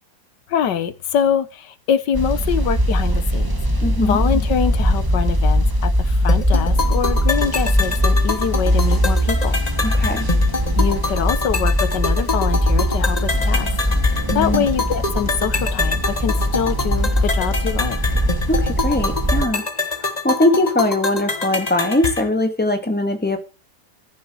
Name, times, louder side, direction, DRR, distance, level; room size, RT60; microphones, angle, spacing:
voice 1, 0.5-3.6 4.0-9.6 10.8-13.7 14.3-18.0, left 8 dB, 85° left, 13 dB, 1.7 m, -24 dB
sound 1, 2.1-19.4, equal, 15° right, 1.7 m, -20 dB
voice 2, 3.8-4.2 9.8-10.3 14.3-14.7 18.5-19.7 20.2-23.4, left 1 dB, 5° left, 6 dB, 1.9 m, -20 dB
sound 2, 6.3-22.3, left 3 dB, 25° left, 1.2 m, -26 dB
sound 3, 13.2-18.7, right 2 dB, 40° right, 2.3 m, -39 dB
14.0 x 7.0 x 6.2 m, 0.32 s
omnidirectional pair, 1.8 m